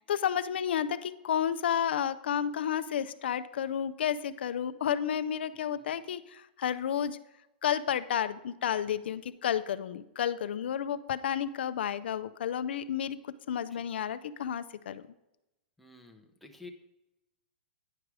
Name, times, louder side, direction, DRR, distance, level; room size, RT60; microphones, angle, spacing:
voice 1, 0.1-7.2 7.6-15.0, left 9 dB, 80° left, 12 dB, 0.4 m, -31 dB
voice 2, 5.5-5.9 13.7-13.9 15.8-16.7, left 3 dB, ahead, 1 dB, 0.6 m, -52 dB
9.8 x 4.8 x 4.7 m, 0.92 s
hypercardioid pair, 160°, 6 cm